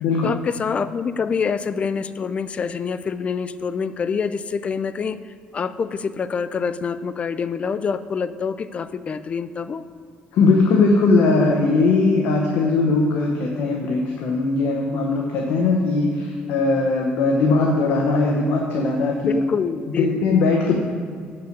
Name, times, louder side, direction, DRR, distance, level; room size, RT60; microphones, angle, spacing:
voice 1, 0.2-5.2 5.5-9.8 19.3-20.3, left 6 dB, 35° left, 13 dB, 0.3 m, -26 dB
voice 2, 10.3-19.4 20.0-20.7, left 3 dB, 80° left, 0 dB, 0.9 m, -19 dB
7.8 x 5.7 x 5.1 m, 2.2 s
cardioid pair, 115°, 4 cm